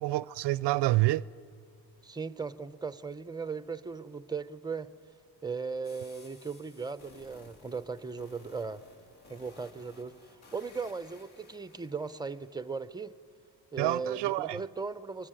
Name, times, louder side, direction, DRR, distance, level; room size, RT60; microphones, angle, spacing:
voice 1, 0.0-1.3 13.8-14.6, right 18 dB, 65° right, 0.5 m, -27 dB
voice 2, 2.0-4.9 5.4-8.8 9.3-13.1 13.7-15.3, right 4 dB, 10° right, 0.6 m, -37 dB
sound 1, 5.8-12.8, left 2 dB, 60° left, 3.2 m, -57 dB
25.0 x 22.0 x 8.9 m
cardioid pair, 120°, 44 cm